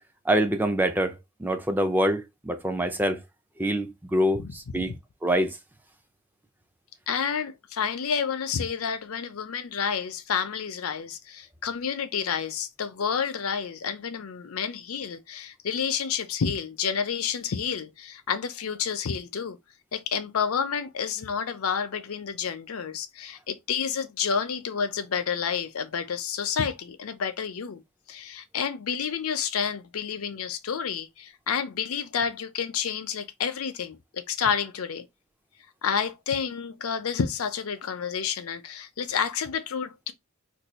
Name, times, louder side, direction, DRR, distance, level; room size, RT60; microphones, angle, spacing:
voice 1, 0.3-1.2 1.4-3.2 3.6-4.4 4.7-4.9 5.2-5.6, equal, 10° right, 0.4 m, -25 dB
voice 2, 4.3-4.9 7.1-19.6 19.9-27.8 28.1-35.1 35.8-40.1, left 7 dB, 80° left, 0.5 m, -30 dB
2.6 x 2.2 x 4.1 m
head